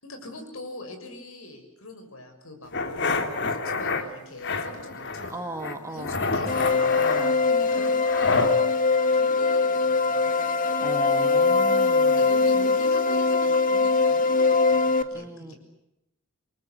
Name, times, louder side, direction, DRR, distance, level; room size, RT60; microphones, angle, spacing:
voice 1, 0.0-8.5 9.1-10.3 12.2-15.6, left 1 dB, 70° left, 6 dB, 6.7 m, -42 dB
sound 1, 2.7-4.0 4.4-5.3 5.6-8.5, left 4 dB, 55° left, 2.7 m, -28 dB
voice 2, 5.3-6.2 7.0-7.4 10.8-12.3 15.1-15.5, right 1 dB, 15° right, 6 dB, 2.5 m, -37 dB
sound 2, 6.5-15.0, left 4 dB, 40° left, 1.8 m, -22 dB
29.5 x 23.0 x 8.0 m, 0.88 s
head